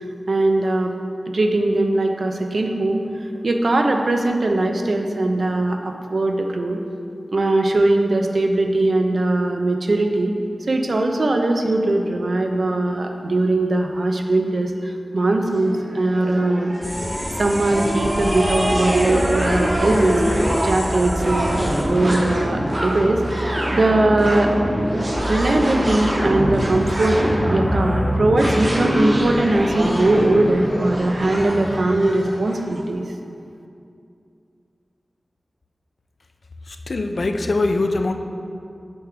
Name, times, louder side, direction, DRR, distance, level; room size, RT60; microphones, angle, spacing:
voice 1, 0.3-0.9 1.3-3.0 3.4-6.8 7.3-10.3 10.7-16.7 17.4-20.2 20.6-24.5 25.3-27.2 27.5-33.0, right 2 dB, 65° right, 4 dB, 0.6 m, -20 dB
sound 1, 15.5-32.6, equal, 40° right, 1.8 m, -24 dB
sound 2, 16.8-21.8, equal, 20° left, 1.2 m, -30 dB
sound 3, 25.2-32.0, equal, ahead, 1.3 m, -32 dB
voice 2, 36.9-38.1, left 2 dB, 65° left, 6 dB, 0.5 m, -21 dB
7.1 x 6.5 x 4.6 m, 2.5 s
wide cardioid pair, 95°, 0 cm